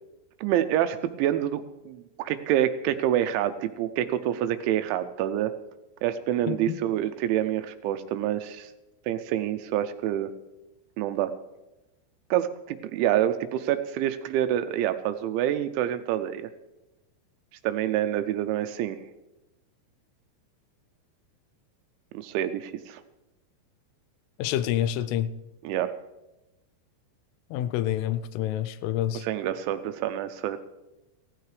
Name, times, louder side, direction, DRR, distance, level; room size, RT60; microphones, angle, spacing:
voice 1, 0.4-5.5 6.0-8.7 9.1-10.3 11.0-11.3 12.3-16.5 17.6-19.0 22.1-23.0 25.6-25.9 29.1-30.6, right 11 dB, 85° right, 9 dB, 2.8 m, -27 dB
voice 2, 6.5-6.8 24.4-25.3 27.5-29.2, left 11 dB, 90° left, 14 dB, 3.2 m, -27 dB
16.5 x 15.5 x 3.2 m, 1.0 s
omnidirectional pair, 5.7 m